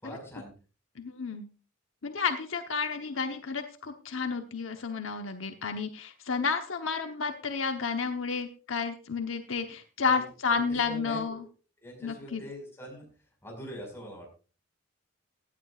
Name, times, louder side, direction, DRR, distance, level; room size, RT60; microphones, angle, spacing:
voice 1, 0.0-0.5 10.0-10.2 10.5-11.4 11.8-13.1 13.4-14.3, equal, 15° left, 0 dB, 5.4 m, -43 dB
voice 2, 1.0-1.5 2.0-11.4 12.0-12.4, left 5 dB, 75° left, 6 dB, 1.1 m, -31 dB
16.5 x 11.0 x 2.5 m, 0.36 s
head